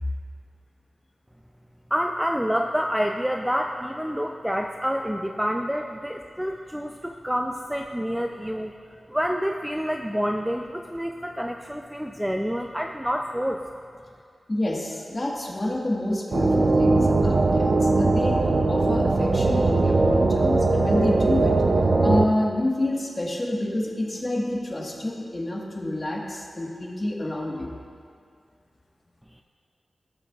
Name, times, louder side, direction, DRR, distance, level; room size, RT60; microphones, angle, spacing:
voice 1, 1.9-8.7 9.1-13.6, equal, 5° right, 2 dB, 0.4 m, -28 dB
voice 2, 14.5-18.4 18.6-21.6 22.0-27.7, left 1 dB, 30° left, -2 dB, 1.5 m, -28 dB
sound 1, 16.3-22.3, right 3 dB, 60° right, 0.6 m, -20 dB
17.0 x 6.6 x 2.4 m, 2.2 s
wide cardioid pair, 95°, 0 cm